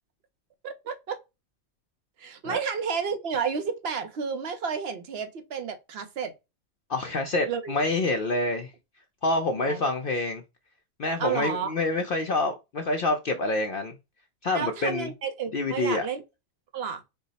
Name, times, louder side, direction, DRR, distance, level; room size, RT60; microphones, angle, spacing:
voice 1, 0.6-1.2 2.2-6.3 7.5-7.8 9.6-9.8 11.2-11.7 14.5-16.2 16.7-17.0, right 6 dB, 60° right, 0.7 m, -31 dB
voice 2, 6.9-8.7 9.2-10.4 11.0-14.0 14.4-15.1 15.5-16.0, left 2 dB, 60° left, 0.6 m, -27 dB
4.6 x 2.0 x 3.9 m
omnidirectional pair, 1.5 m